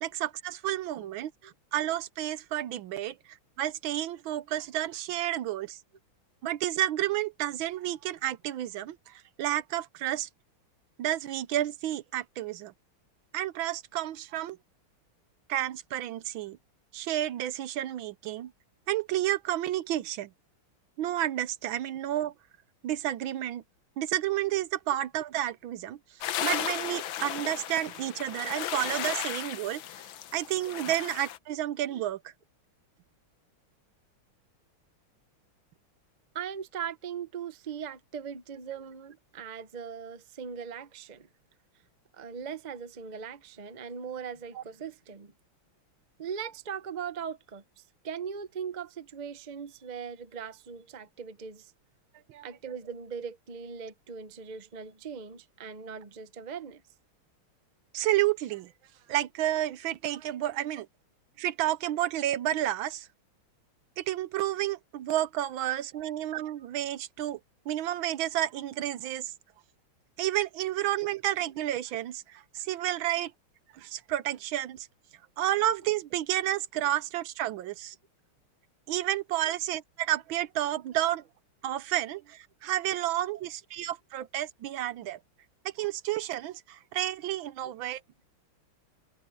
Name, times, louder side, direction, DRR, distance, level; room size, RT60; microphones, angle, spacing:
voice 1, 0.0-5.8 6.4-10.3 11.0-12.7 13.3-14.6 15.5-16.6 16.9-18.5 18.9-20.3 21.0-22.3 22.8-23.6 24.0-26.0 26.4-29.8 30.3-32.2 44.6-44.7 52.3-52.4 57.9-58.7 59.1-60.9 61.4-63.1 64.0-67.4 67.7-69.3 70.2-73.3 73.7-74.9 75.4-77.9 78.9-81.2 81.6-85.2 85.8-88.0, right 13 dB, 75° right, 1.4 m, -31 dB
sound 1, 26.2-31.4, left 11 dB, 70° left, 1.6 m, -35 dB
voice 2, 36.3-41.3 42.1-45.3 46.2-51.7 52.4-56.8 65.9-66.1 71.0-71.1 79.4-79.5 87.6-87.7, right 7 dB, 40° right, 0.6 m, -40 dB
omnidirectional pair, 2.3 m